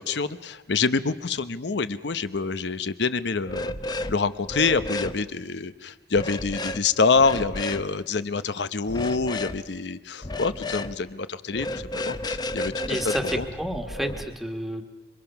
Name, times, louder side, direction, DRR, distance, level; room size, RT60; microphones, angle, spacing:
voice 1, 0.0-13.5, left 4 dB, 80° left, 13 dB, 0.8 m, -26 dB
sound 1, 3.5-4.2 4.4-5.2 6.2-6.8 7.2-7.8 8.9-9.6 10.2-10.9 11.5-14.2, left 2 dB, 25° left, 0.6 m, -32 dB
voice 2, 12.8-14.8, equal, ahead, 5 dB, 1.6 m, -30 dB
27.0 x 24.0 x 5.9 m, 1.3 s
head